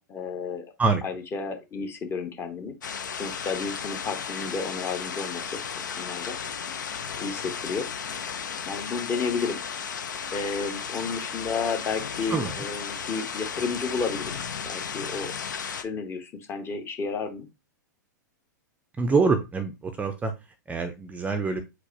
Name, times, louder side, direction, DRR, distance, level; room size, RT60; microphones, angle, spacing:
voice 1, 0.0-0.6 1.0-2.7 3.1-5.6 6.0-6.4 7.2-7.9 8.7-9.6 10.3-14.3 14.6-15.3 15.8-17.5, left 4 dB, 25° left, 6 dB, 1.0 m, -32 dB
sound 1, 2.8-15.8, left 7 dB, 75° left, 0.6 m, -34 dB
voice 2, 19.0-20.3 20.7-21.6, right 4 dB, 15° right, 7 dB, 0.5 m, -25 dB
4.6 x 2.1 x 4.6 m, 0.24 s
figure-of-eight pair, 105°, 10 cm